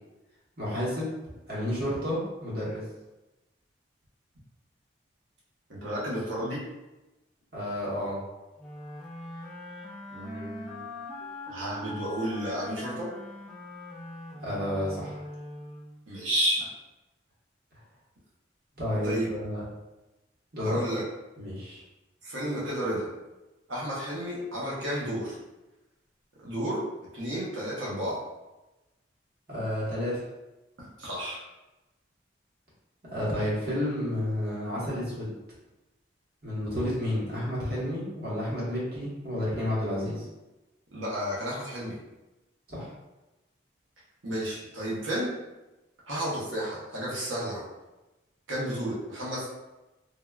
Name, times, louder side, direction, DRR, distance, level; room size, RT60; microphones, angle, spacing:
voice 1, 0.6-1.1 1.5-2.8 7.5-8.2 14.4-15.2 18.8-19.6 20.5-20.8 21.4-21.8 29.5-30.2 33.1-35.3 36.4-40.3 42.7-42.9, left 1 dB, 50° right, -7 dB, 1.0 m, -31 dB
voice 2, 5.7-6.6 10.1-10.8 11.5-13.1 16.1-16.7 19.0-19.3 20.6-21.0 22.2-23.1 23.7-25.4 26.4-26.8 27.1-28.2 30.8-31.4 40.9-42.0 44.2-45.3 46.1-47.6 48.5-49.5, equal, 85° right, -7 dB, 0.8 m, -32 dB
sound 1, 8.6-16.1, left 1 dB, ahead, 0.4 m, -41 dB
3.5 x 2.2 x 2.2 m, 1.0 s
head